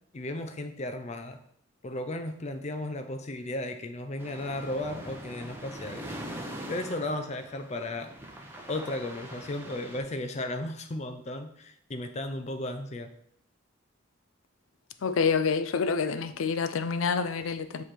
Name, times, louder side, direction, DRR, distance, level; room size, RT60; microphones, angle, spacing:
voice 1, 0.1-1.4 1.8-6.1 6.7-8.1 8.7-13.1, left 1 dB, 35° left, 7 dB, 0.5 m, -35 dB
sound 1, 4.2-10.0, right 1 dB, 10° right, 0.8 m, -42 dB
voice 2, 15.0-17.8, left 5 dB, 90° left, 10 dB, 0.5 m, -27 dB
7.0 x 3.2 x 4.4 m, 0.70 s
head